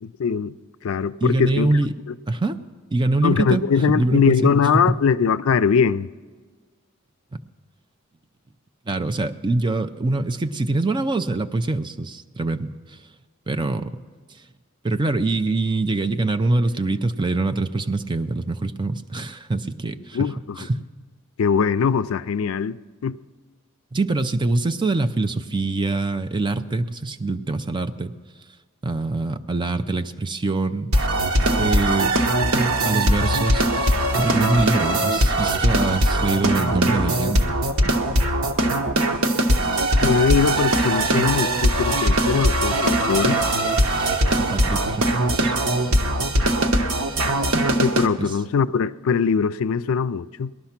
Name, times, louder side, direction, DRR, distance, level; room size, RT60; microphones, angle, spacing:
voice 1, 0.0-0.5 0.8-1.7 3.2-6.1 20.1-20.7 21.4-23.2 40.0-43.4 47.8-50.5, left 6 dB, 75° left, 0.4 m, -21 dB
voice 2, 1.2-1.9 2.3-2.6 2.9-5.0 7.3-7.4 8.9-13.0 13.5-14.0 14.3-14.4 14.8-20.2 20.6-20.8 23.9-28.1 28.8-30.9 31.6-32.2 32.8-37.6 37.8-38.0 44.4-45.5 45.9-46.0 48.2-48.4, right 2 dB, 20° right, 0.5 m, -24 dB
sound 1, 30.9-48.1, right 1 dB, 85° right, 1.0 m, -20 dB
18.5 x 12.0 x 5.8 m
head